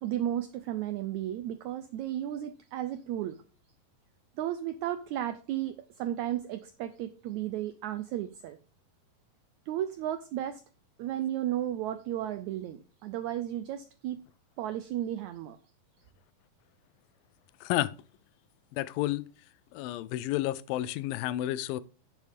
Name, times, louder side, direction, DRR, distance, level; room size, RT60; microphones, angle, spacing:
voice 1, 0.0-3.4 4.4-8.6 9.7-10.6 11.0-14.2 14.6-15.6, right 12 dB, 85° right, 1.6 m, -34 dB
voice 2, 17.6-17.9 18.7-19.2 19.7-21.8, left 15 dB, 90° left, 2.3 m, -31 dB
10.5 x 7.3 x 3.5 m
omnidirectional pair, 4.0 m